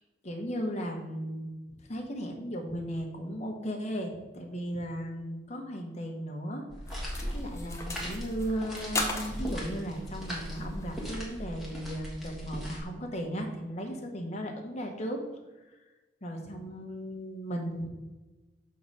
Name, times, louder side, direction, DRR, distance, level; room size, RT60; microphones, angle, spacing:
voice 1, 0.2-1.5 1.9-6.6 7.3-15.2 16.2-17.9, equal, 40° left, 2 dB, 1.1 m, -36 dB
sound 1, 6.7-12.8, equal, ahead, 1.5 m, -38 dB
sound 2, 6.9-11.6, left 2 dB, 15° left, 0.8 m, -39 dB
6.5 x 3.9 x 5.5 m, 1.1 s
head